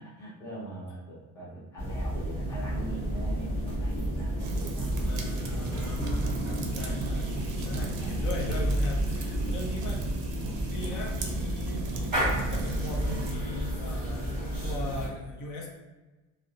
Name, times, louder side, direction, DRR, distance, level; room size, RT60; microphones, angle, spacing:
voice 1, 0.0-4.9 5.4-5.8 7.5-8.3, right 1 dB, 10° left, -8 dB, 0.5 m, -42 dB
sound 1, 1.8-15.1, right 1 dB, 25° right, 0.9 m, -31 dB
sound 2, 2.7-9.6, equal, 40° left, 1.3 m, -40 dB
sound 3, 4.4-13.3, right 4 dB, 60° right, 0.5 m, -38 dB
voice 2, 5.1-15.7, left 2 dB, 60° left, -1 dB, 0.6 m, -39 dB
2.5 x 2.0 x 2.7 m, 1.2 s
cardioid pair, 175°, 35 cm